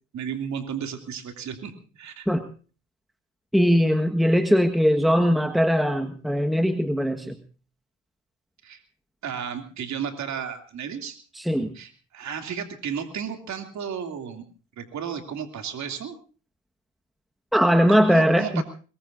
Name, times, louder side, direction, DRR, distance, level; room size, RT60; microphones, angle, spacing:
voice 1, 0.1-2.3 8.6-8.8 9.2-11.2 11.7-14.4 14.8-16.2 17.9-18.6, right 7 dB, 70° right, 5 dB, 2.8 m, -33 dB
voice 2, 3.5-7.4 11.3-11.7 17.5-18.6, equal, ahead, 7 dB, 1.5 m, -20 dB
22.5 x 21.5 x 2.7 m, 0.37 s
cardioid pair, 90°, 30 cm